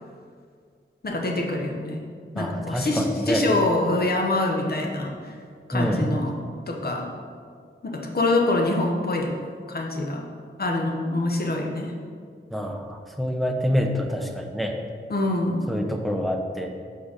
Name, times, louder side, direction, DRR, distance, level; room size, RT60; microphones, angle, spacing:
voice 1, 1.0-2.0 2.3-5.4 5.7-6.4 6.7-7.1 7.8-9.4 9.7-10.3 10.6-11.9 15.1-15.7, left 2 dB, 50° left, 1 dB, 0.9 m, -25 dB
voice 2, 2.4-3.5 5.7-6.1 12.5-14.8 15.7-16.7, equal, ahead, 2 dB, 0.6 m, -26 dB
5.1 x 4.6 x 5.0 m, 2.1 s
wide cardioid pair, 90°, 21 cm